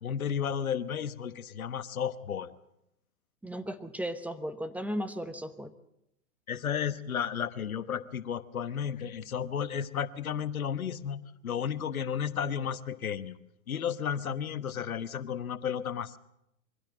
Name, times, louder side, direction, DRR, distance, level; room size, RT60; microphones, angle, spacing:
voice 1, 0.0-2.5 6.5-13.4 13.7-16.2, left 8 dB, 90° left, 12 dB, 1.2 m, -33 dB
voice 2, 3.4-5.7, equal, 5° right, 9 dB, 0.9 m, -35 dB
23.0 x 16.5 x 7.5 m, 0.82 s
hypercardioid pair, 120°, 41 cm